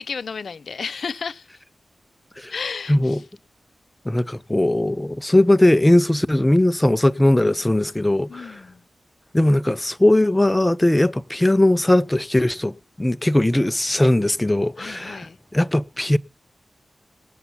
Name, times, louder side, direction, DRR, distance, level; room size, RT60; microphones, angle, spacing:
voice 1, 0.0-1.5 2.5-3.2 8.3-8.8 14.8-15.4, left 5 dB, 75° left, 0.7 m, -32 dB
voice 2, 2.9-3.2 4.1-8.6 9.3-15.2 15.5-16.2, left 1 dB, 15° left, 0.7 m, -19 dB
18.5 x 7.1 x 5.6 m
cardioid pair, 55°, 0 cm